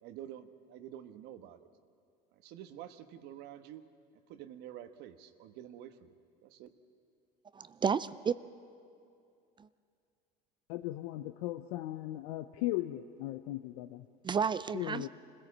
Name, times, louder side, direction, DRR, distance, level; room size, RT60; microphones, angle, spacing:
voice 1, 0.0-1.7 2.3-3.8 4.3-6.1 6.4-6.7, right 11 dB, 65° right, 10 dB, 1.3 m, -48 dB
voice 2, 7.5-8.3 9.6-9.7 14.2-15.1, right 6 dB, 25° right, 15 dB, 0.5 m, -31 dB
voice 3, 10.7-14.1 14.7-15.1, left 16 dB, 80° left, 9 dB, 0.6 m, -37 dB
25.5 x 16.5 x 7.3 m, 2.4 s
supercardioid pair, 100°, 18 cm